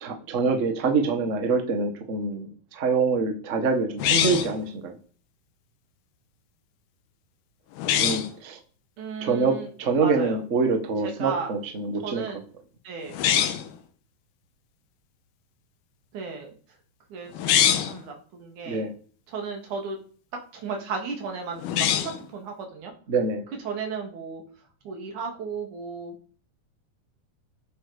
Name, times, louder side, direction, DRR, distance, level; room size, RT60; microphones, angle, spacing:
voice 1, 0.0-4.9 8.0-8.6 9.2-12.2 18.6-18.9 23.1-23.4, right 4 dB, 85° right, 5 dB, 0.6 m, -25 dB
sound 1, 4.0-4.6 7.8-8.3 13.1-13.7 17.3-18.0 21.6-22.3, left 10 dB, 80° left, 3.1 m, -23 dB
voice 2, 9.0-9.7 10.0-10.4 11.0-11.5 12.0-12.4 12.8-13.2 16.1-16.5 17.1-17.3 17.9-18.9 19.3-20.0 20.5-22.9 23.6-24.4 24.8-26.2, right 5 dB, 55° right, 2 dB, 3.9 m, -34 dB
15.5 x 8.6 x 5.3 m, 0.43 s
omnidirectional pair, 4.5 m